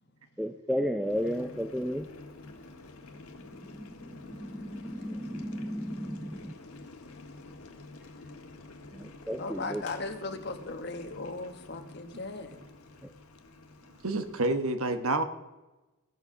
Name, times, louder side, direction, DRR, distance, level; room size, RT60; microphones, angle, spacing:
voice 1, 0.4-2.1 3.7-6.5 8.9-9.8, equal, ahead, 7 dB, 0.4 m, -34 dB
Boiling, 1.0-14.5, left 2 dB, 80° left, 1.5 m, -49 dB
voice 2, 3.7-7.5 9.4-12.6, left 3 dB, 50° left, 8 dB, 1.1 m, -40 dB
voice 3, 14.0-15.2, right 2 dB, 75° right, 9 dB, 1.2 m, -28 dB
16.5 x 7.1 x 6.0 m, 1.1 s
head